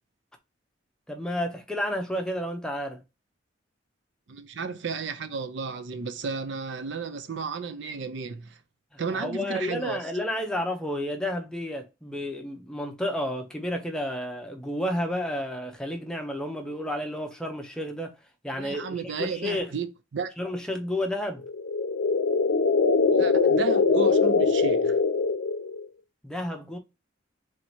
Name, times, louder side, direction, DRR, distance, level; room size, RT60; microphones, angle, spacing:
voice 1, 1.1-3.0 9.1-18.2 18.4-19.8 20.4-21.4 26.2-26.8, left 1 dB, 5° left, 0.6 m, -31 dB
voice 2, 4.3-8.6 9.0-10.0 18.6-19.9 20.1-20.3 23.1-25.0, right 5 dB, 65° right, 0.5 m, -33 dB
sound 1, 21.4-25.8, left 4 dB, 80° left, 0.5 m, -22 dB
3.2 x 2.8 x 4.3 m
head